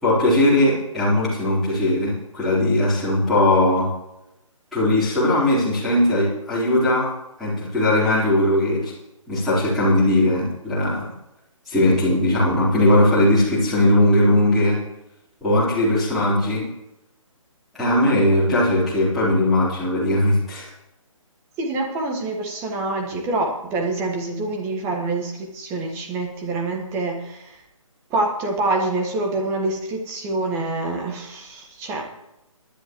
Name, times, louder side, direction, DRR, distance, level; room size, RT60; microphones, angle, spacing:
voice 1, 0.0-3.9 4.7-7.1 7.4-8.9 9.3-11.1 11.7-14.8 15.4-16.7 17.7-20.7, left 1 dB, ahead, -13 dB, 3.9 m, -19 dB
voice 2, 21.6-27.6 28.1-32.0, right 2 dB, 15° right, 1 dB, 1.7 m, -26 dB
19.0 x 10.5 x 3.2 m, 0.89 s
figure-of-eight pair, 145°, 18 cm